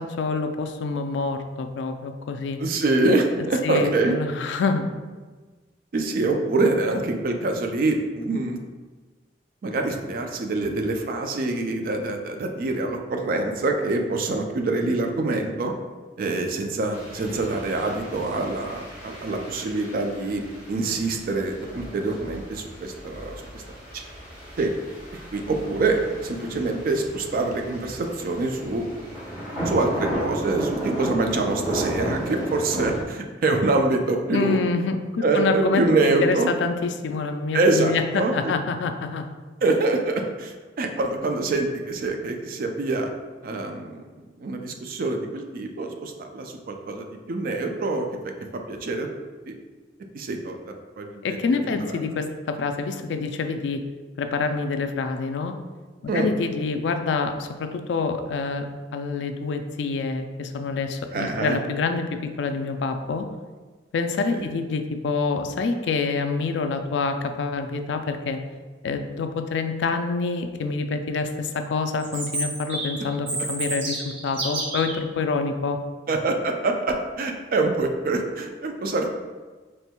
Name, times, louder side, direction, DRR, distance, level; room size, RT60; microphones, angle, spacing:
voice 1, 0.0-2.6 3.6-4.9 34.3-39.2 51.2-53.8 54.2-55.5 56.0-58.7 58.9-63.3 63.9-68.4 68.8-75.8, left 4 dB, 70° left, 7 dB, 0.3 m, -27 dB
voice 2, 2.6-4.2 5.9-8.6 9.6-15.7 16.2-23.6 23.9-24.0 24.6-24.7 25.3-28.8 29.7-34.6 35.2-36.5 37.5-38.5 39.6-43.1 43.4-44.0 44.4-48.3 48.7-49.1 49.5-49.6 50.1-50.6 51.0-52.0 56.1-56.3 61.1-61.6 64.3-64.5 76.1-79.1, right 2 dB, 50° right, 4 dB, 0.4 m, -25 dB
sound 1, 16.9-33.0, equal, 10° right, 1.4 m, -34 dB
Chirp tweet, 72.0-75.0, right 2 dB, 80° right, 1.0 m, -30 dB
4.4 x 3.2 x 2.2 m, 1.3 s
head